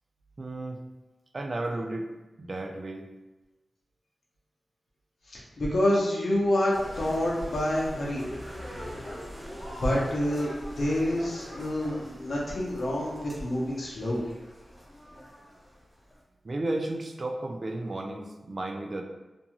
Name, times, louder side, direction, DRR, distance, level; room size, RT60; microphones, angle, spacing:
voice 1, 0.4-0.8 1.3-2.1 2.4-3.1 16.4-19.0, right 2 dB, 45° right, 4 dB, 0.4 m, -33 dB
voice 2, 5.3-8.2 9.8-10.5 10.8-14.2, left 1 dB, 65° left, -5 dB, 0.7 m, -27 dB
sound 1, 6.7-16.1, equal, 5° right, 0.8 m, -42 dB
2.6 x 2.3 x 2.9 m, 1.1 s
cardioid pair, 65°, 0 cm